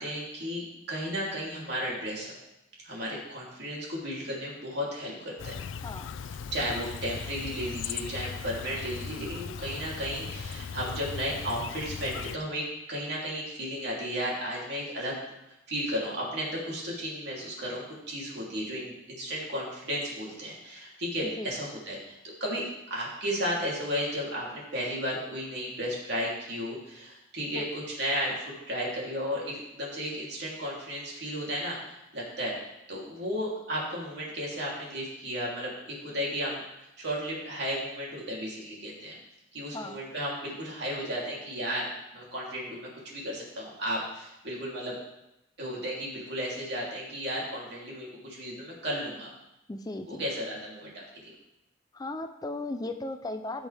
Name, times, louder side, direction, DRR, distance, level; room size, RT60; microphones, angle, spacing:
voice 1, 0.0-2.3 2.8-5.5 6.5-15.2 15.7-22.6 22.9-32.5 32.9-39.2 39.5-41.9 42.1-44.9 45.6-49.3 50.1-51.3, equal, 60° right, -4 dB, 3.1 m, -34 dB
Chirp tweet, 5.4-12.4, left 6 dB, 85° left, 0.4 m, -38 dB
voice 2, 49.7-50.2 51.9-53.7, left 2 dB, 20° left, 7 dB, 0.4 m, -36 dB
16.0 x 6.2 x 3.4 m, 0.89 s
head